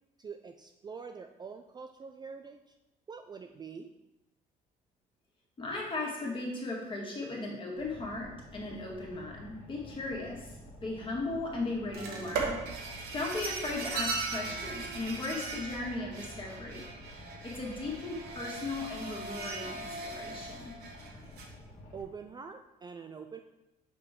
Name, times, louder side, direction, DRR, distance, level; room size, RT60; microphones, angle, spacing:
voice 1, 0.2-2.6 3.1-3.9 21.9-23.4, right 5 dB, 25° right, 5 dB, 0.3 m, -45 dB
voice 2, 5.6-12.7 13.1-16.9 17.4-20.8, left 2 dB, 30° left, -2 dB, 1.8 m, -37 dB
Boat Water vehicle, 7.7-22.0, left 1 dB, 55° left, 1.6 m, -50 dB
sound 1, 11.9-21.5, right 4 dB, 70° right, 1.3 m, -38 dB
5.8 x 5.1 x 3.7 m, 0.94 s
cardioid pair, 110°, 17 cm